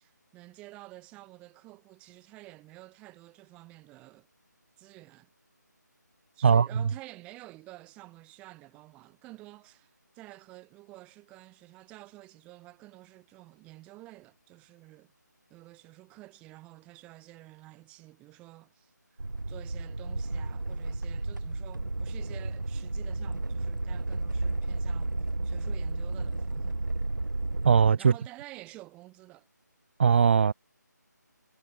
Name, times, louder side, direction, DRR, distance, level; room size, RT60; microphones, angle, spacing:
voice 1, 0.0-4.3 4.8-5.3 6.3-15.1 15.5-19.2 19.5-25.2 25.4-26.8 28.0-29.5, right 19 dB, 10° right, 4.8 m, -50 dB
sound 1, 19.2-27.9, right 2 dB, 85° right, 1.5 m, -32 dB
voice 2, 27.6-28.1 30.0-30.5, right 6 dB, 35° right, 0.9 m, -20 dB
figure-of-eight pair, 160°, 10 cm